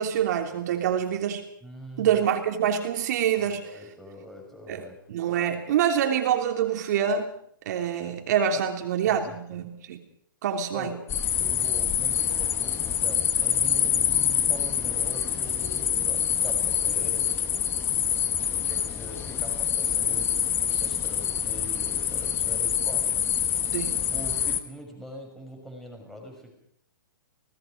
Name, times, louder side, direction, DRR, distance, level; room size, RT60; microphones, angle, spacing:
voice 1, 0.0-1.4 2.0-3.6 4.7-7.3 7.6-10.0 10.4-10.9 23.7-23.9, right 9 dB, 50° right, 4 dB, 3.1 m, -26 dB
voice 2, 1.6-2.2 3.4-5.0 9.0-9.7 10.7-11.0 11.4-23.1 23.9-26.5, equal, 5° left, 3 dB, 6.3 m, -43 dB
sound 1, 11.1-24.6, left 9 dB, 20° left, 1.4 m, -26 dB
30.0 x 18.5 x 5.2 m, 0.68 s
hypercardioid pair, 125°, 11 cm